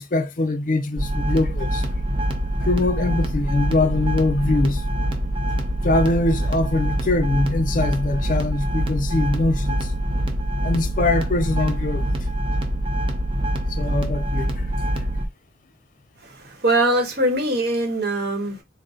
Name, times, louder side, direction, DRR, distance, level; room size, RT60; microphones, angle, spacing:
voice 1, 0.0-1.9 2.6-4.8 5.8-9.8 10.6-12.1 13.7-14.5, left 2 dB, 45° left, 0.4 m, -22 dB
sound 1, 1.0-15.3, right 1 dB, 25° right, 0.5 m, -24 dB
voice 2, 16.2-18.6, right 1 dB, 55° right, 1.0 m, -22 dB
4.0 x 2.0 x 3.7 m
head